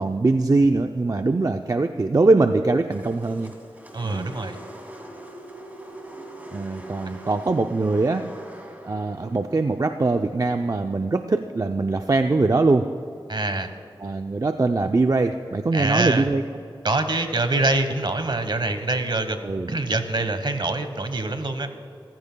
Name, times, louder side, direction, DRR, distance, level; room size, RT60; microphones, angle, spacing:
voice 1, 0.0-3.5 4.0-4.4 6.5-8.3 8.8-12.9 14.0-16.4 19.4-19.7, right 3 dB, 40° right, 6 dB, 0.5 m, -22 dB
sound 1, 2.9-11.2, right 1 dB, 20° right, 2.7 m, -43 dB
voice 2, 3.9-4.6 13.3-13.7 15.7-16.3 16.8-21.7, right 2 dB, 55° right, 8 dB, 1.2 m, -25 dB
26.0 x 15.0 x 2.3 m, 2.7 s
wide cardioid pair, 60°, 9 cm